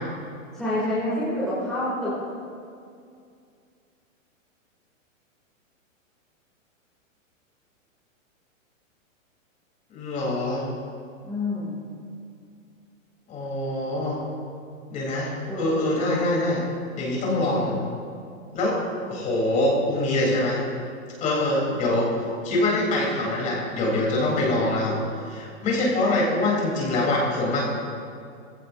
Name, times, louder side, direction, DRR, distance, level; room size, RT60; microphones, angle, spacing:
voice 1, 0.5-2.3 11.2-11.7 15.5-16.0, left 1 dB, ahead, -12 dB, 2.7 m, -28 dB
voice 2, 9.9-10.6 13.3-14.2 14.9-16.6 17.0-17.7 18.5-18.8 19.1-20.6 21.2-22.1 22.4-25.0 25.2-27.6, left 2 dB, 20° left, -4 dB, 3.8 m, -24 dB
21.5 x 16.0 x 2.7 m, 2.3 s
hypercardioid pair, 165°, 40 cm